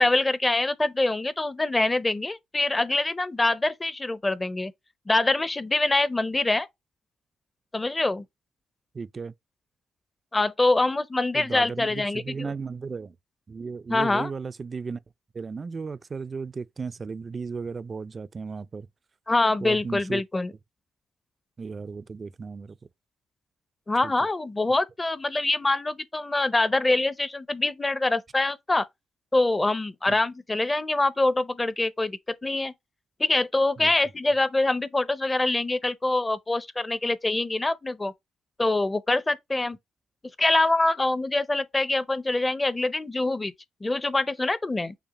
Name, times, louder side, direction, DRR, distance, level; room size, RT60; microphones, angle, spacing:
voice 1, 0.0-4.7 5.1-6.7 7.7-8.2 10.3-12.5 13.9-14.3 19.3-20.5 23.9-28.9 29.3-32.7 33.2-38.1 38.6-39.8 40.4-43.5 43.8-44.9, left 2 dB, 20° left, 0.5 m, -24 dB
voice 2, 8.9-9.3 11.3-13.2 13.5-15.0 15.3-18.9 19.6-20.2 21.6-22.8 24.0-24.3 30.1-30.2 33.8-33.9, right 5 dB, 40° right, 0.3 m, -35 dB
5.8 x 2.1 x 4.0 m
cardioid pair, 70°, 0 cm